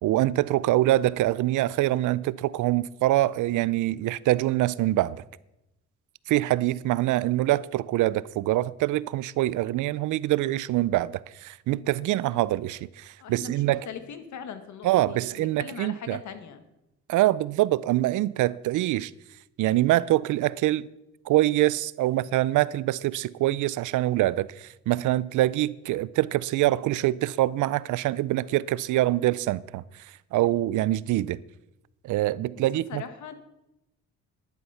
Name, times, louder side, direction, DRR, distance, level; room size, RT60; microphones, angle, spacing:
voice 1, 0.0-5.2 6.3-13.9 14.8-16.2 17.1-19.1 19.6-20.9 21.3-30.1 30.3-31.4 32.0-33.0, right 15 dB, 80° right, 0.5 m, -25 dB
voice 2, 13.2-16.6 32.5-33.3, left 7 dB, 70° left, 1.6 m, -40 dB
11.0 x 11.0 x 5.7 m
cardioid pair, 90°, 30 cm